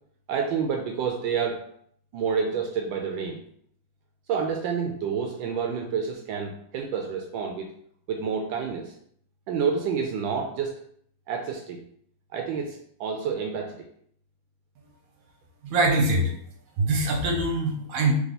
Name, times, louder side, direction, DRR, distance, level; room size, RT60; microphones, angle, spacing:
voice 1, 0.3-1.6 2.1-3.4 4.3-7.7 8.1-8.9 9.5-10.7 11.3-11.8 12.3-13.8, right 6 dB, 75° right, 2 dB, 1.2 m, -28 dB
voice 2, 15.6-16.3 16.8-18.1, right 2 dB, 50° right, 0 dB, 1.2 m, -23 dB
3.5 x 3.2 x 4.0 m, 0.65 s
omnidirectional pair, 2.2 m